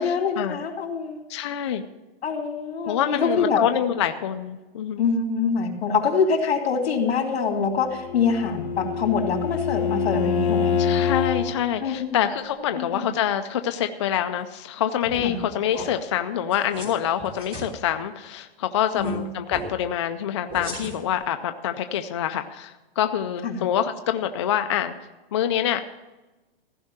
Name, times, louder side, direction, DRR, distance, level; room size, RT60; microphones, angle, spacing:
voice 1, 0.0-1.2 2.2-3.6 5.0-10.9 11.8-12.2 12.7-13.1 15.2-15.4 19.0-19.4 23.4-23.7, left 5 dB, 75° left, 3 dB, 2.7 m, -25 dB
voice 2, 1.3-1.8 2.9-5.0 10.8-24.9 25.3-26.0, left 10 dB, 30° left, 8 dB, 0.4 m, -26 dB
Bowed string instrument, 7.8-11.6, left 7 dB, 55° left, 2.0 m, -25 dB
sound 1, 15.0-15.4 15.7-15.8 16.5-16.9 17.2-17.6 18.9-19.1 19.5-19.6 20.5-21.1, equal, 15° right, 3.5 m, -36 dB
15.0 x 5.3 x 8.7 m, 1.1 s
hypercardioid pair, 165°, 31 cm